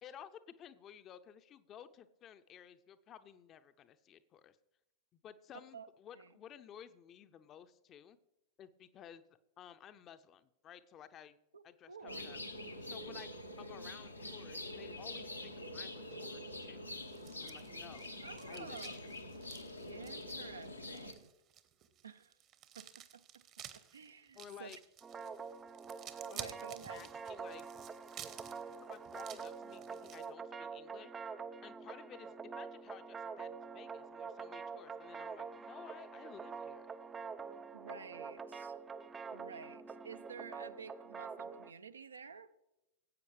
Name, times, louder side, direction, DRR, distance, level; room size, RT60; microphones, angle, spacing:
voice 1, 0.0-4.6 5.1-8.2 8.6-9.2 9.6-11.3 11.6-12.4 12.8-16.8 17.4-18.2 18.5-19.1 24.3-24.8 26.3-26.5 26.9-27.6 28.8-31.1 31.6-36.9, left 9 dB, 30° left, 12 dB, 0.6 m, -55 dB
voice 2, 11.5-12.3 18.2-19.1 19.9-21.3 22.0-22.4 22.8-23.4 23.7-24.8 26.3-27.1 37.7-38.7 39.3-42.5, right 6 dB, 75° right, 12 dB, 0.5 m, -51 dB
sound 1, 12.1-21.1, left 1 dB, 85° left, 0.9 m, -45 dB
sound 2, 17.1-30.3, right 10 dB, 35° right, 0.9 m, -53 dB
sound 3, 25.0-41.7, right 5 dB, 20° right, 0.5 m, -46 dB
17.5 x 8.3 x 3.2 m, 0.95 s
figure-of-eight pair, 90°, 0 cm